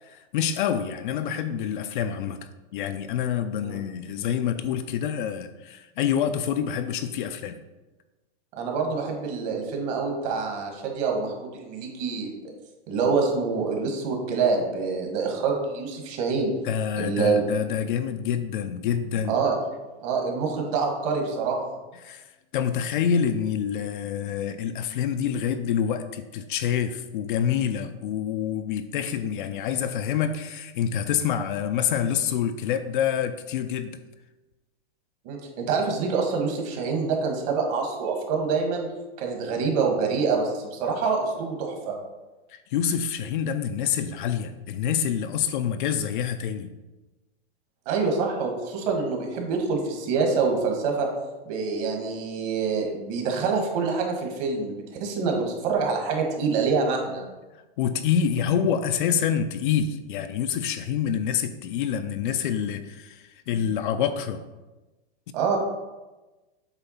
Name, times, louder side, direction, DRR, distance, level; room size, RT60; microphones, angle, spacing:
voice 1, 0.0-2.4 2.7-7.6 16.6-19.4 22.0-22.3 22.5-34.0 42.5-46.7 57.8-64.4, left 8 dB, 50° left, 9 dB, 0.5 m, -27 dB
voice 2, 8.6-12.3 12.9-16.5 16.9-17.4 19.3-19.6 20.0-21.6 35.2-38.9 39.2-41.9 47.8-51.1 51.4-57.2 65.3-65.6, right 4 dB, 40° right, 2 dB, 1.5 m, -26 dB
8.1 x 3.2 x 5.6 m, 1.1 s
supercardioid pair, 155°, 32 cm